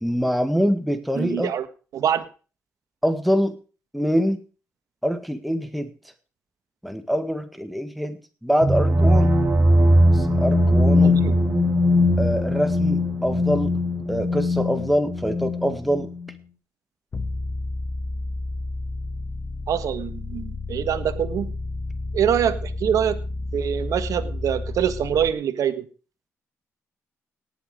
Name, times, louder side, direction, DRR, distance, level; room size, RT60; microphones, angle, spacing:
voice 1, 0.0-1.5 3.0-3.6 3.9-4.4 5.0-5.9 6.8-9.3 10.1-11.2 12.2-13.8 14.1-16.1, equal, ahead, 8 dB, 1.8 m, -24 dB
voice 2, 1.1-1.7 1.9-2.2 11.0-11.3 19.7-21.6 22.1-23.2 23.5-25.8, right 9 dB, 70° right, 12 dB, 1.4 m, -24 dB
sound 1, 8.6-16.3, left 1 dB, 35° right, 2.4 m, -20 dB
sound 2, 17.1-25.3, left 2 dB, 40° left, 1.3 m, -31 dB
18.0 x 7.2 x 5.0 m, 0.37 s
supercardioid pair, 65°, 6 cm